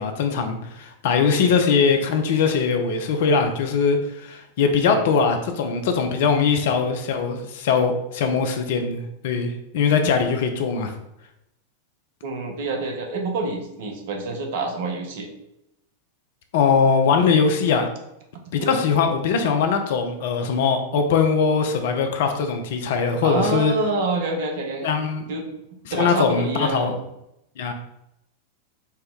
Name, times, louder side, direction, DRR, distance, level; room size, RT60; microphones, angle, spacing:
voice 1, 0.0-10.9 16.5-17.9 18.5-23.7 24.8-25.2 25.9-26.9 27.6-27.7, left 5 dB, 55° left, 5 dB, 0.5 m, -21 dB
voice 2, 1.4-1.8 4.8-5.0 12.2-15.3 18.6-18.8 23.2-24.9 25.3-25.5 25.9-26.9, right 3 dB, 55° right, 2 dB, 0.7 m, -27 dB
4.2 x 2.1 x 3.6 m, 0.83 s
figure-of-eight pair, 90°, 0 cm